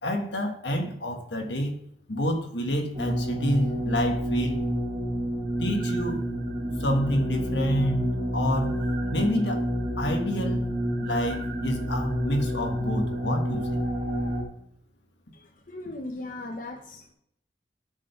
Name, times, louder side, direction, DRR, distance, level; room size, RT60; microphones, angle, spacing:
voice 1, 0.0-1.8 2.1-4.6 5.6-6.2 6.8-8.8 9.1-9.7 10.0-10.6 11.0-13.6, equal, 80° left, 4 dB, 1.4 m, -28 dB
sound 1, 2.9-14.4, equal, 30° right, 2.3 m, -29 dB
voice 2, 15.3-17.1, left 2 dB, 45° left, 4 dB, 0.9 m, -38 dB
11.5 x 5.0 x 5.8 m, 0.71 s
head